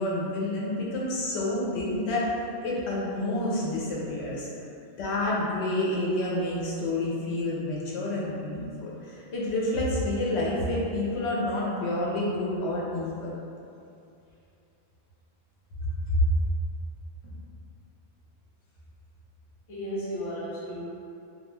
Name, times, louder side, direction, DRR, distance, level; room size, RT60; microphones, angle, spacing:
voice 1, 0.0-2.3 2.6-4.5 5.0-13.3 15.8-16.3, left 1 dB, 85° left, -5 dB, 0.9 m, -28 dB
voice 2, 19.7-20.9, equal, 35° left, -8 dB, 0.6 m, -34 dB
2.4 x 2.2 x 3.1 m, 2.6 s
omnidirectional pair, 1.1 m